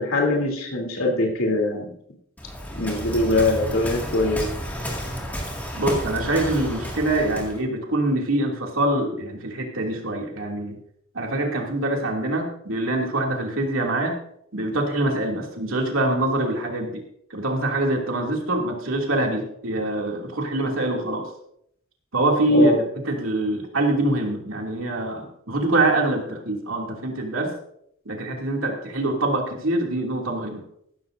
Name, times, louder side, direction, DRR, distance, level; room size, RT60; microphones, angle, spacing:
voice 1, 0.0-1.9 2.7-4.5 22.5-22.8, left 2 dB, 85° left, 0 dB, 3.2 m, -22 dB
Waves surf, 2.4-7.6, equal, 10° left, 2.1 m, -31 dB
voice 2, 5.7-10.8 11.1-14.2 14.5-17.0 17.3-21.3 22.1-22.8 23.0-27.6 28.1-30.6, right 1 dB, 80° right, 0 dB, 2.6 m, -24 dB
15.0 x 13.0 x 2.6 m, 0.72 s
head